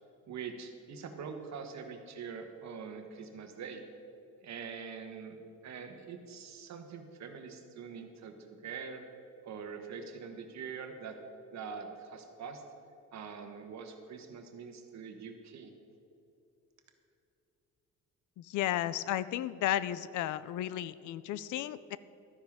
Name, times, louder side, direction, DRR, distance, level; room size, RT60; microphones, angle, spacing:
voice 1, 0.3-3.8 4.4-5.4 5.6-8.3 8.6-9.0 9.4-11.2 11.5-12.6 13.1-15.7, right 6 dB, 65° right, 5 dB, 1.2 m, -44 dB
voice 2, 18.4-22.0, left 12 dB, 75° left, 17 dB, 0.4 m, -33 dB
12.5 x 9.9 x 3.6 m, 2.8 s
cardioid pair, 90°, 30 cm